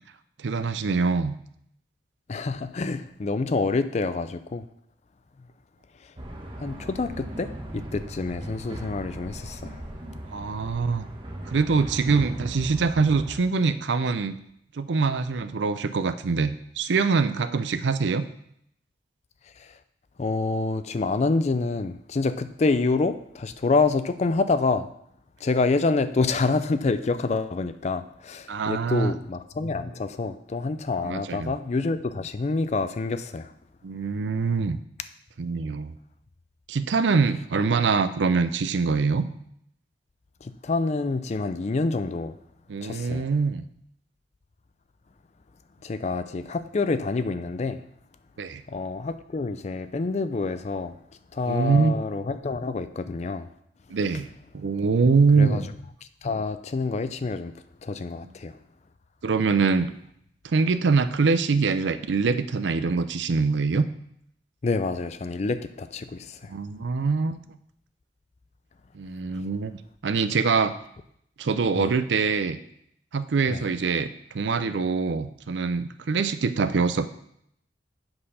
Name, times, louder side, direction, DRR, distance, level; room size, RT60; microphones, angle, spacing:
voice 1, 0.4-1.3 10.3-11.1 11.5-14.4 14.8-18.2 28.5-29.1 31.0-31.5 33.8-34.8 35.4-36.0 36.7-39.3 42.7-43.6 48.4-48.6 51.5-52.0 53.9-54.3 54.5-55.7 58.2-58.3 59.2-59.9 60.4-63.9 66.5-67.4 68.9-69.7 70.0-70.7 71.4-72.6 73.1-77.1, right 4 dB, 85° right, 0.5 m, -24 dB
voice 2, 2.3-4.6 6.6-9.7 20.2-24.9 25.4-33.5 40.4-42.3 42.8-43.2 45.8-47.8 48.7-50.9 51.3-53.5 55.4-55.6 56.2-57.5 57.8-58.5 64.6-66.4 71.7-71.9 73.5-73.6, left 3 dB, 40° left, 0.4 m, -27 dB
sound 1, 6.2-13.4, right 1 dB, 30° right, 1.1 m, -38 dB
7.7 x 4.3 x 5.5 m
head